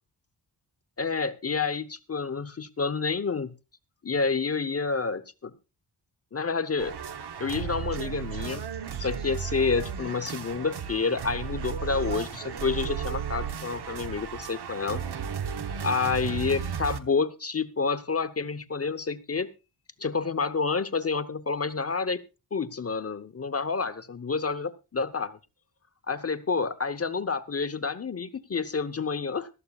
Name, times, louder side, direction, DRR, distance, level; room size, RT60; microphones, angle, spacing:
voice 1, 1.0-3.5 4.0-5.5 6.3-7.0 7.4-8.7 9.0-15.0 15.8-19.5 20.0-22.2 22.5-25.4 26.1-29.5, left 4 dB, 35° left, 11 dB, 0.9 m, -29 dB
sound 1, 6.8-17.0, right 7 dB, 65° right, 1.1 m, -34 dB
18.0 x 13.0 x 2.4 m, 0.29 s
cardioid pair, 75°, 42 cm